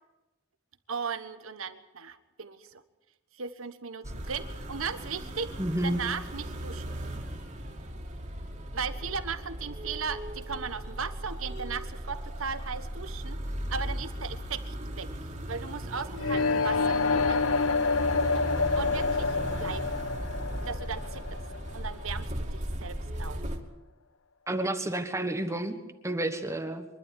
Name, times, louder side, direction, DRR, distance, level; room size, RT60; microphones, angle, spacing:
voice 1, 0.9-2.8 3.3-5.5 5.8-7.1 8.7-13.4 13.7-15.1 15.5-17.4 18.8-19.9 20.6-21.4 21.7-23.4, right 5 dB, 85° right, 11 dB, 1.4 m, -37 dB
sound 1, 4.0-23.6, equal, 35° right, 2.7 m, -37 dB
voice 2, 5.6-6.0 24.5-25.8 26.0-26.9, right 1 dB, 15° right, 7 dB, 1.3 m, -30 dB
sound 2, 16.2-22.1, left 4 dB, 85° left, 0.9 m, -27 dB
24.5 x 12.0 x 9.5 m, 1.1 s
head